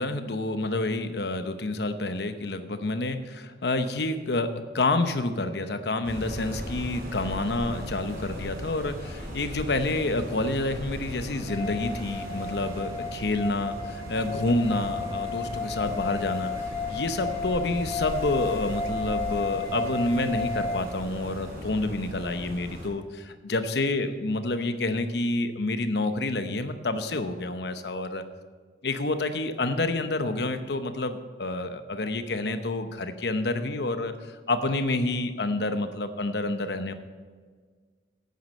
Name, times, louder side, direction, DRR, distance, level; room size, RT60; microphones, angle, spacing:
voice 1, 0.0-28.2 28.8-36.9, left 2 dB, 70° left, 9 dB, 0.9 m, -28 dB
sound 1, 6.0-22.9, equal, 55° right, 3.6 m, -38 dB
sound 2, 11.5-20.8, left 4 dB, 35° left, 2.3 m, -33 dB
9.6 x 9.4 x 5.4 m, 1.5 s
head